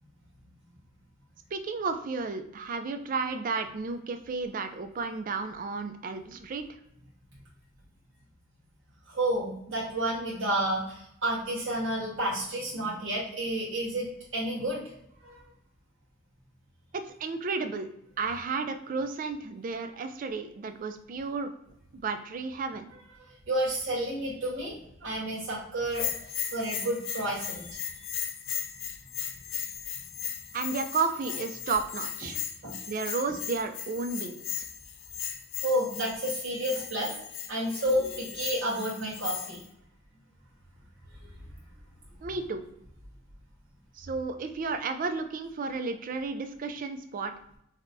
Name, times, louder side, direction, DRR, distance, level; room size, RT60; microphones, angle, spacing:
voice 1, 1.5-6.6 16.9-17.9 18.2-21.5 21.9-22.9 30.5-32.4 32.9-34.6 42.2-42.6 44.0-47.3, right 4 dB, 40° right, 7 dB, 0.4 m, -32 dB
voice 2, 9.1-14.1 14.3-14.8 15.2-15.4 23.3-26.1 26.5-28.0 32.6-32.8 35.6-37.1 37.5-39.6 41.2-41.3, right 1 dB, 70° right, -6 dB, 1.2 m, -30 dB
Bell, 25.9-39.6, left 9 dB, 65° left, 0.4 m, -37 dB
4.9 x 2.2 x 2.6 m, 0.75 s
head